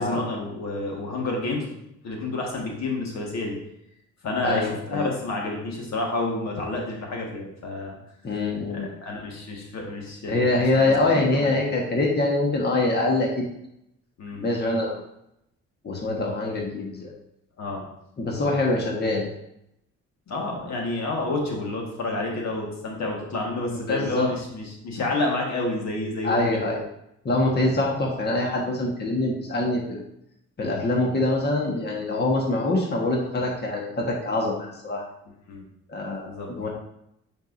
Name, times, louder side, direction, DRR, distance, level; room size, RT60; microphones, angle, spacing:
voice 1, 0.0-1.8 2.0-3.6 4.2-8.0 8.7-11.0 11.3-11.6 14.2-14.5 17.6-17.8 18.3-18.5 20.3-26.6 35.5-35.6 36.2-36.5, left 2 dB, 65° left, 0 dB, 1.7 m, -29 dB
voice 2, 4.4-5.1 8.2-8.9 10.3-13.5 14.4-15.0 15.8-17.1 18.2-19.3 23.9-24.3 26.2-26.8 27.2-30.0 30.6-35.0 35.9-36.7, left 2 dB, 35° left, -1 dB, 1.4 m, -24 dB
8.9 x 4.7 x 2.6 m, 0.79 s
cardioid pair, 90°, 30 cm